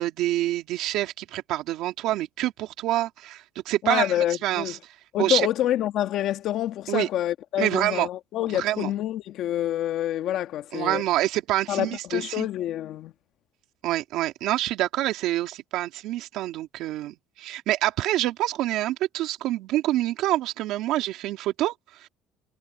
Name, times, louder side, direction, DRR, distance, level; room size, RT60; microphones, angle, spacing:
voice 1, 0.0-4.8 5.2-5.5 6.9-7.1 7.6-8.1 8.5-8.9 10.7-12.5 13.8-22.1, right 15 dB, 70° right, 3.2 m, -27 dB
voice 2, 3.8-4.8 5.1-11.0 11.7-13.1, left 12 dB, 60° left, 1.5 m, -27 dB
cardioid pair, 145°, 0 cm